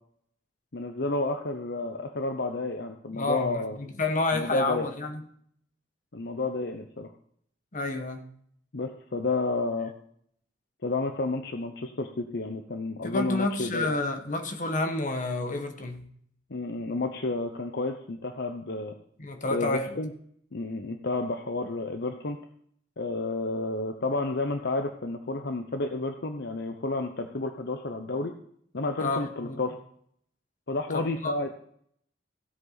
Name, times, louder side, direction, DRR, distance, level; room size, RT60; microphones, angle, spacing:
voice 1, 0.7-3.8 4.3-4.9 6.1-7.1 8.7-9.9 10.8-13.9 16.5-18.9 19.5-20.1 20.5-22.4 23.0-28.3 28.7-29.7 30.7-31.5, left 2 dB, 60° left, 0.8 m, -31 dB
voice 2, 3.1-5.3 7.7-8.3 13.0-16.1 19.2-20.0 29.0-29.6 30.9-31.3, left 2 dB, 45° left, 1.2 m, -30 dB
16.0 x 8.0 x 4.0 m
head